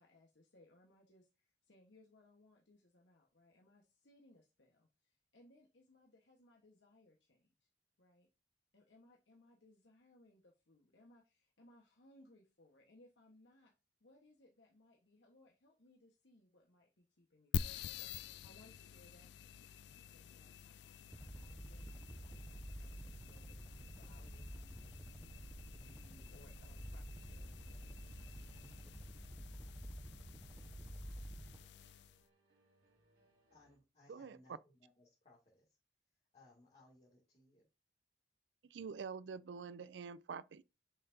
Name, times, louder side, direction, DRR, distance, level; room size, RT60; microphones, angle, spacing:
voice 1, 0.0-7.7 8.0-8.3 8.7-13.7 14.0-19.3 20.1-28.7, left 2 dB, 90° left, 1.3 m, -67 dB
sound 1, 17.5-32.2, left 7 dB, 65° left, 0.3 m, -48 dB
sound 2, 21.0-31.7, right 1 dB, 10° right, 0.5 m, -50 dB
sound 3, 26.5-33.8, right 2 dB, 60° right, 3.5 m, -74 dB
voice 2, 33.5-35.8 36.3-37.7, left 2 dB, 40° left, 2.5 m, -66 dB
voice 3, 38.6-40.6, right 5 dB, 75° right, 0.4 m, -46 dB
7.2 x 5.7 x 2.7 m
head